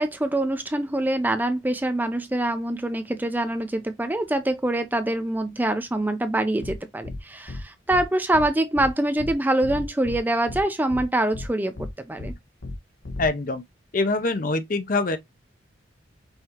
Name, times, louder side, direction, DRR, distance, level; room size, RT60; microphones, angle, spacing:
voice 1, 0.0-12.3, right 1 dB, 10° right, 0.4 m, -25 dB
sound 1, 6.6-6.8 7.0-7.2 7.5-7.6 7.9-8.0 8.3-8.5 8.8-8.9 9.2-9.3 9.6-10.2 10.5-10.6 10.9-11.0 11.3-11.5 11.8-11.9 12.2-12.3 12.6-12.8 13.0-13.3, left 2 dB, 85° left, 1.2 m, -34 dB
voice 2, 13.2-13.6 13.9-15.2, left 2 dB, 45° left, 0.6 m, -24 dB
5.6 x 2.7 x 2.9 m
head